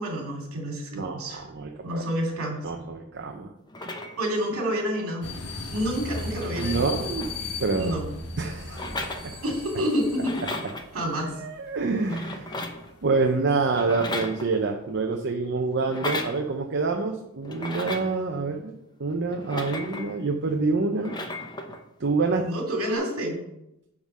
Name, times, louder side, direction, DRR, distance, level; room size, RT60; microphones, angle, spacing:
voice 1, 0.0-1.4 1.8-2.6 4.2-5.3 5.7-7.0 7.7-8.0 9.4-10.4 10.9-11.4 22.4-23.4, equal, 70° right, 0 dB, 2.6 m, -28 dB
voice 2, 0.9-2.1 2.6-3.5 6.6-7.3 7.6-7.9 8.4-8.9 9.2-9.3 11.3-12.5 13.0-18.7 19.0-21.2 22.0-22.4, right 3 dB, 55° right, 2 dB, 0.7 m, -27 dB
sound 1, 3.7-4.4 5.5-5.6 5.8-7.8 8.7-9.7 10.1-10.9 11.9-12.9 13.7-14.8 15.8-16.4 17.4-18.2 19.3-20.2 20.9-21.8 22.8-22.9, left 2 dB, 20° left, 0.7 m, -35 dB
sound 2, 5.2-12.1 12.4-12.5 12.8-12.9 13.6-13.7 14.7-14.8, left 2 dB, 85° left, 1.3 m, -36 dB
9.6 x 3.7 x 6.1 m, 0.86 s
head